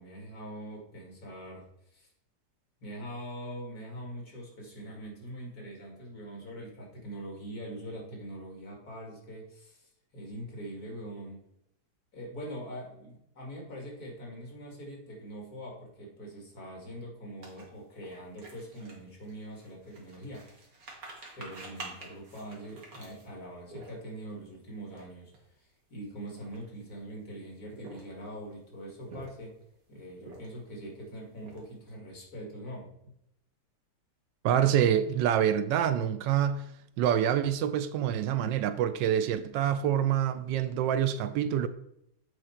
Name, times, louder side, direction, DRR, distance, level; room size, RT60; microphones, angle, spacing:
voice 1, 0.0-2.1 2.8-11.5 12.1-20.7 21.4-25.3 25.6-29.5 29.9-32.9, right 1 dB, 55° left, 2.5 m, -43 dB
sound 1, 17.4-24.3 24.8-25.0 25.3-25.5 26.2-27.0 27.6-28.3 28.9-29.6 30.2-30.7 31.1-31.9, right 2 dB, 55° right, 2.0 m, -48 dB
voice 2, 34.4-36.7 37.0-41.7, right 10 dB, 90° right, 1.3 m, -26 dB
8.1 x 4.8 x 4.3 m
omnidirectional pair, 1.9 m